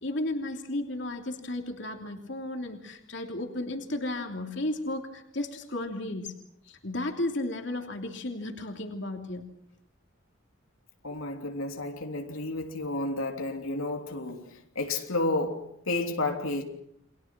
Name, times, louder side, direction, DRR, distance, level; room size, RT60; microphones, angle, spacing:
voice 1, 0.0-6.4 6.7-9.5, left 1 dB, 55° left, 3.2 m, -34 dB
voice 2, 11.0-16.6, left 2 dB, 85° left, 3.2 m, -31 dB
30.0 x 24.5 x 6.1 m
head